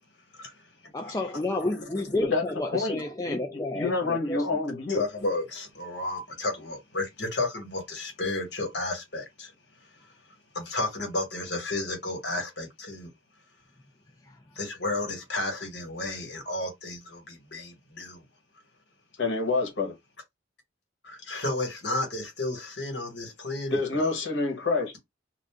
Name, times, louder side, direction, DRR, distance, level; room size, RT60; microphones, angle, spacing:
voice 1, 0.9-4.8 14.3-14.4, left 2 dB, 15° left, 0.3 m, -31 dB
voice 2, 3.7-5.0 19.2-20.0 23.7-25.0, left 3 dB, 75° left, 1.0 m, -27 dB
voice 3, 4.9-9.5 9.8-9.9 10.5-13.1 14.5-18.2 21.0-24.1, left 2 dB, 55° left, 1.3 m, -32 dB
2.5 x 2.5 x 3.5 m
head